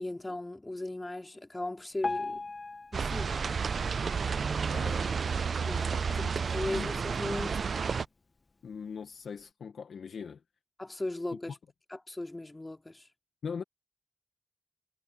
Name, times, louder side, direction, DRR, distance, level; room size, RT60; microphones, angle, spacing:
voice 1, 0.0-2.4 2.9-3.4 5.6-7.7 10.8-11.6 11.9-13.1, left 2 dB, 25° left, 2.5 m, -37 dB
Piano, 2.0-5.1 5.6-5.8 6.1-6.2 6.9-7.0 7.6-7.7, left 3 dB, 45° left, 1.0 m, -39 dB
sound 1, 2.9-8.1, right 5 dB, 70° right, 0.4 m, -31 dB
voice 2, 4.7-5.1 6.2-6.3 6.7-7.0 8.6-10.4 11.5-11.6 13.4-13.6, left 6 dB, 90° left, 1.1 m, -40 dB
cardioid pair, 65°, 0 cm